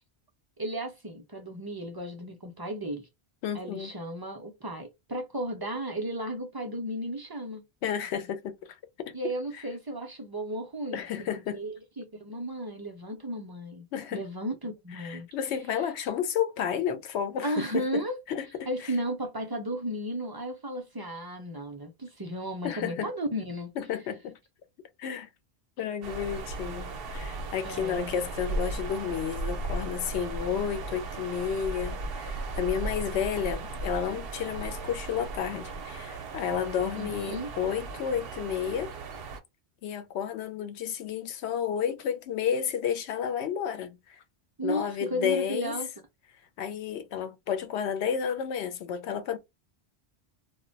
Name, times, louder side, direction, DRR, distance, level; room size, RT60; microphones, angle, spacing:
voice 1, 0.6-3.1 3.5-7.6 9.1-13.9 14.1-15.3 17.4-18.2 18.7-23.7 27.6-28.1 36.9-37.5 44.6-45.9, right 1 dB, 40° right, 0.3 m, -34 dB
voice 2, 3.4-3.9 7.8-9.2 10.9-11.6 13.9-14.2 15.0-18.0 18.3-18.9 22.6-23.1 23.8-24.4 25.0-25.3 25.8-38.9 39.8-44.2 44.6-45.8 46.6-49.4, left 8 dB, 90° left, 0.8 m, -31 dB
sound 1, 26.0-39.4, right 3 dB, 70° right, 0.7 m, -36 dB
2.2 x 2.1 x 3.7 m
omnidirectional pair, 1.1 m